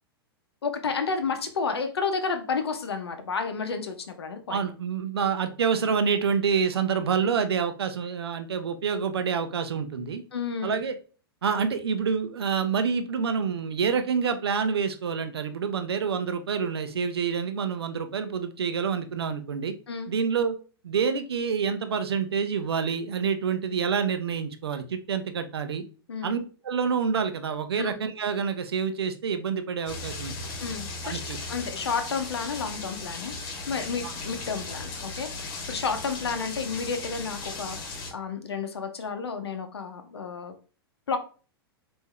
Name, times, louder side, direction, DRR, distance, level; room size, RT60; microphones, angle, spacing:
voice 1, 0.6-4.6 10.3-10.7 19.9-20.1 26.1-26.3 27.8-27.9 30.6-33.3 33.7-40.5 41.1-41.2, left 5 dB, 80° left, 7 dB, 0.6 m, -31 dB
voice 2, 4.5-10.2 10.6-10.9 11.4-19.7 20.1-20.5 20.8-25.8 26.2-30.3 31.0-31.4 34.0-34.1, right 6 dB, 75° right, 8 dB, 0.6 m, -27 dB
sound 1, 29.9-38.1, left 3 dB, 40° left, 1.3 m, -37 dB
3.5 x 2.6 x 3.1 m, 0.37 s
hypercardioid pair, 105°, 13 cm